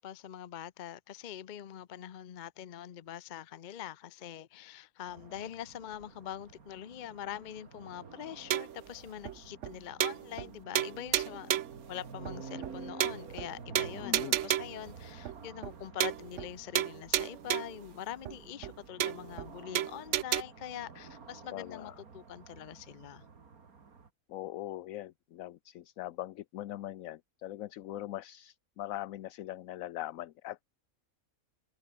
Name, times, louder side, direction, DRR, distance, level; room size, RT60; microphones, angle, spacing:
voice 1, 0.0-11.5 11.9-23.2, left 10 dB, 55° left, 0.5 m, -44 dB
sound 1, 5.1-24.1, right 5 dB, 80° right, 2.7 m, -51 dB
sound 2, 8.5-8.8 9.3-9.4 9.6-9.7 10.0-10.5 10.8-11.8 12.3-12.4 12.6-12.7 13.0-13.5 13.8-14.8 15.3-15.4 15.6-15.7 16.0-16.5 16.8-17.8 18.3-18.4 18.6-18.7 19.0-19.5 19.8-20.4, right 12 dB, 65° right, 0.9 m, -31 dB
voice 2, 14.0-14.4 21.5-21.9 24.3-30.8, left 14 dB, 70° left, 1.0 m, -41 dB
omnidirectional pair, 1.5 m